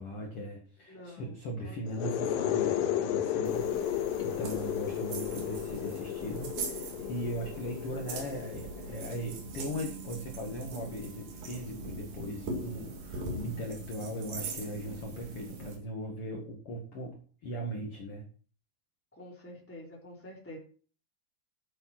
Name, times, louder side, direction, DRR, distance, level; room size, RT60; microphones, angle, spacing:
voice 1, 0.0-18.3, equal, 45° left, 1 dB, 2.1 m, -39 dB
voice 2, 0.9-1.3 1.6-1.9 19.2-20.6, left 1 dB, 5° left, -2 dB, 3.0 m, -47 dB
sound 1, 1.9-9.4, left 11 dB, 75° left, 2.1 m, -33 dB
sound 2, 3.4-15.8, right 3 dB, 55° right, 3.5 m, -41 dB
11.5 x 9.0 x 4.4 m, 0.41 s
omnidirectional pair, 4.9 m